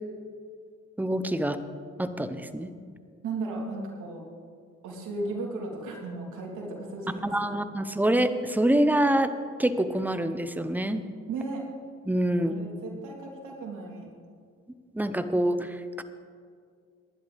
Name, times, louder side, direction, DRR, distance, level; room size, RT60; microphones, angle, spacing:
voice 1, 1.0-1.6 2.0-2.7 7.2-9.3 9.6-11.0 12.1-12.5 14.9-16.0, right 1 dB, 5° right, 10 dB, 0.8 m, -26 dB
voice 2, 3.2-4.2 4.8-7.2 11.3-11.6 12.4-14.1, right 3 dB, 80° right, -2 dB, 3.6 m, -35 dB
19.0 x 11.0 x 3.6 m, 2.2 s
cardioid pair, 90°, 30 cm